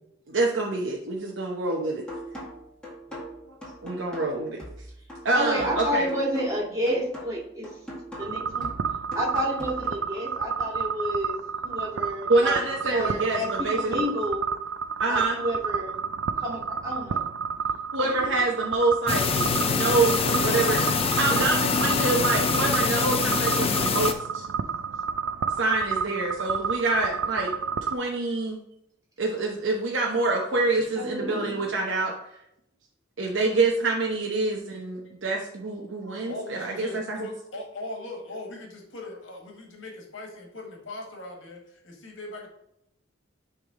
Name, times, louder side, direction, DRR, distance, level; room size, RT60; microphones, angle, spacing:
voice 1, 0.3-2.1 3.5-3.6 3.8-4.6 5.2-6.1 12.3-14.0 15.0-15.4 17.9-19.5 19.7-24.4 25.6-27.5 27.8-28.6 29.2-32.1 33.2-37.2, right 3 dB, 75° right, -1 dB, 0.9 m, -26 dB
sound 1, 2.1-10.1, equal, 5° left, 1.9 m, -41 dB
voice 2, 5.3-7.7 8.2-8.7 9.1-11.4 11.6-12.6 12.9-14.4 15.1-16.0 16.4-17.2 18.0-18.4 20.3-20.8 21.5-21.6 24.1-24.2 31.0-31.6, equal, 20° right, -4 dB, 2.1 m, -30 dB
sound 2, 8.2-28.0, right 6 dB, 90° right, 0.4 m, -30 dB
sound 3, 19.1-24.1, left 5 dB, 30° left, 0.5 m, -24 dB
voice 3, 36.2-42.5, left 2 dB, 75° left, 1 dB, 1.6 m, -39 dB
10.0 x 3.6 x 3.8 m, 0.76 s
head